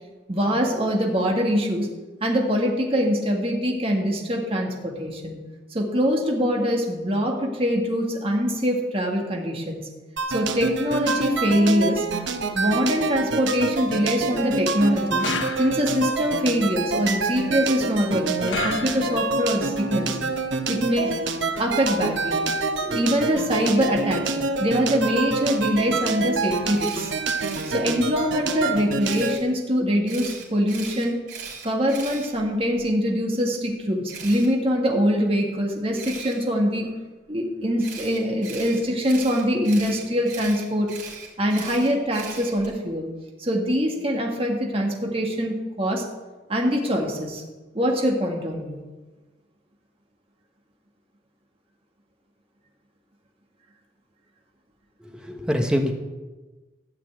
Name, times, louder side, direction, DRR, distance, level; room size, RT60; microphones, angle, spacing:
voice 1, 0.3-1.9 2.2-5.4 5.7-9.8 10.3-12.1 12.5-15.3 15.6-20.1 20.7-21.2 21.6-22.4 22.8-24.3 24.6-27.1 27.7-31.2 31.6-36.9 37.3-40.9 41.4-43.1 43.4-46.0 46.5-47.4 47.7-48.8, equal, 30° right, 0 dB, 1.8 m, -23 dB
sound 1, 10.2-29.4, right 4 dB, 90° right, 0.9 m, -27 dB
sound 2, 15.2-16.1 18.5-19.4, left 5 dB, 90° left, 1.0 m, -31 dB
Camera, 26.8-27.7 29.0-29.4 30.1-32.8 34.1-34.5 36.0-36.3 37.8-42.7, right 6 dB, 50° right, 4.2 m, -38 dB
voice 2, 55.0-55.9, equal, 5° right, 3 dB, 1.2 m, -24 dB
13.0 x 5.9 x 9.0 m, 1.2 s
head